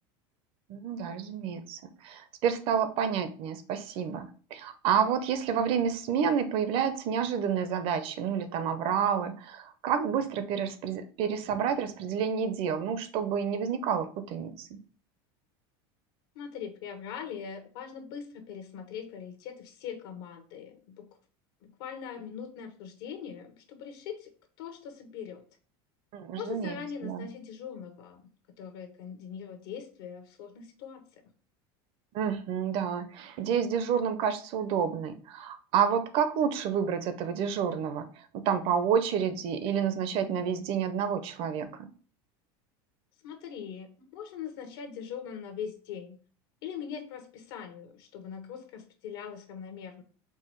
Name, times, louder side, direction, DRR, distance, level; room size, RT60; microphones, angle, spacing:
voice 1, 0.7-14.8 26.1-27.3 32.1-38.1 38.3-41.9, right 7 dB, 45° right, 11 dB, 0.6 m, -29 dB
voice 2, 16.3-21.2 21.6-24.3 24.6-25.4 26.4-28.3 28.6-31.3 43.2-46.2 46.6-50.0, left 7 dB, 75° left, 5 dB, 1.0 m, -41 dB
4.7 x 2.3 x 4.4 m, 0.40 s
supercardioid pair, 145°, 13 cm